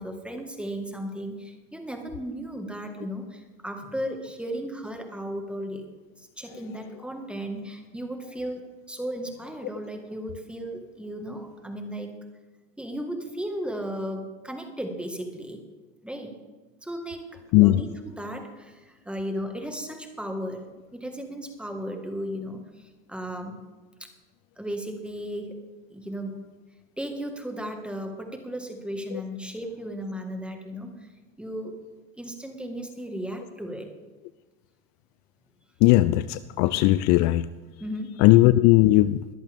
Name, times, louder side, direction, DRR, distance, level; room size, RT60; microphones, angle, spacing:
voice 1, 0.0-5.9 6.2-12.2 12.8-15.6 16.0-16.4 16.8-20.6 20.9-23.6 24.0-24.1 24.6-25.6 25.9-26.4 27.0-31.1 31.4-31.8 32.2-33.9 37.8-38.2, equal, 5° right, 4 dB, 1.7 m, -35 dB
voice 2, 35.8-37.5 38.2-39.2, left 17 dB, 50° left, 15 dB, 0.5 m, -18 dB
23.0 x 8.1 x 3.6 m, 1.3 s
supercardioid pair, 115°, 35 cm